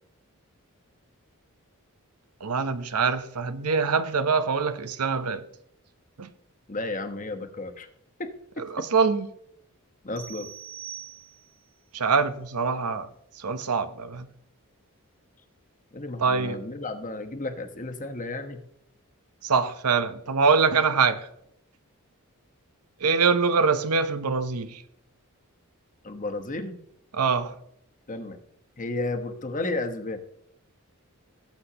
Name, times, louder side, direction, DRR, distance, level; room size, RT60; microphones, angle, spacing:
voice 1, 2.4-5.4 6.2-6.3 8.7-9.3 11.9-13.1 13.4-14.3 16.2-16.6 19.4-21.3 23.0-24.8 27.1-27.5, right 5 dB, 90° right, 0.9 m, -24 dB
voice 2, 6.7-7.9 8.2-8.3 8.6-8.9 10.0-10.5 15.9-18.6 26.0-26.8 28.1-28.4 28.8-30.2, left 2 dB, 35° left, 1.2 m, -33 dB
sound 1, 10.2-11.7, right 10 dB, 60° right, 3.5 m, -42 dB
17.5 x 8.1 x 2.9 m
head